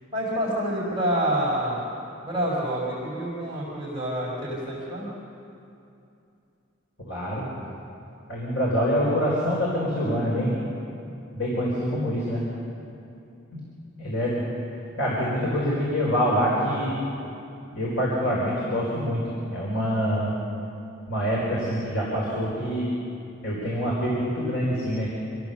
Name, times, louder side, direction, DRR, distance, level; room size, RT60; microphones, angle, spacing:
voice 1, 0.1-1.9 2.2-5.1, right 1 dB, 20° right, -7 dB, 4.7 m, -27 dB
voice 2, 7.1-7.4 8.3-10.6 11.3-12.4 14.0-14.4 15.0-16.9 17.7-19.2 19.5-20.3 21.1-22.9 23.4-25.1, equal, 70° left, -6 dB, 4.9 m, -25 dB
26.5 x 16.5 x 7.1 m, 2.7 s
head